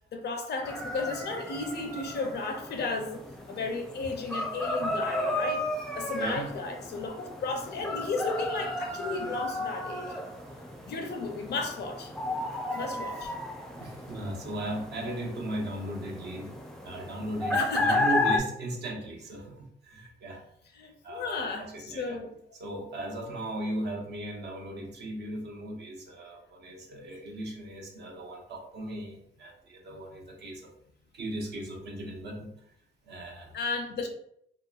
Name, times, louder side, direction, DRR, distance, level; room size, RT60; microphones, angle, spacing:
voice 1, 0.1-3.2 3.5-5.6 5.9-10.1 10.8-12.1 12.7-13.3 17.5-18.0 20.7-22.3 33.5-34.1, left 3 dB, 55° left, 4 dB, 0.5 m, -34 dB
sound 1, 0.6-18.4, left 2 dB, ahead, 0.4 m, -33 dB
voice 2, 6.2-6.5 9.2-9.4 13.8-16.5 16.8-20.4 21.0-22.2 22.6-30.7 31.1-32.5 33.1-33.5, right 1 dB, 60° right, 0 dB, 0.8 m, -37 dB
2.9 x 2.2 x 2.3 m, 0.71 s
cardioid pair, 90°, 20 cm